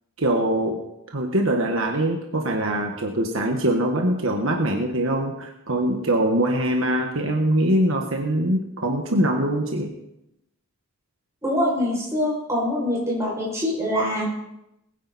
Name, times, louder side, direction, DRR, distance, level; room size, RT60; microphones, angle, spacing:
voice 1, 0.2-0.8 1.1-9.9, right 1 dB, 65° right, 2 dB, 1.5 m, -23 dB
voice 2, 11.4-14.2, left 1 dB, 15° right, -5 dB, 6.5 m, -24 dB
20.5 x 10.0 x 4.3 m, 0.86 s
head